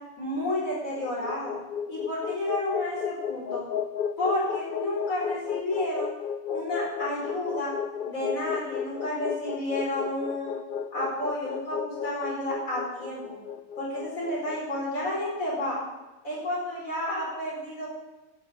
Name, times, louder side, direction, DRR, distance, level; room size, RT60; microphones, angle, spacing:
voice 1, 0.2-1.6 1.9-3.6 4.2-6.1 6.5-7.7 8.0-10.5 10.9-13.2 13.8-15.8 16.2-17.9, left 1 dB, 70° left, -6 dB, 5.6 m, -31 dB
sound 1, 0.8-15.1, left 8 dB, 55° left, 0.6 m, -33 dB
11.0 x 10.0 x 8.1 m, 1.0 s
omnidirectional pair, 1.5 m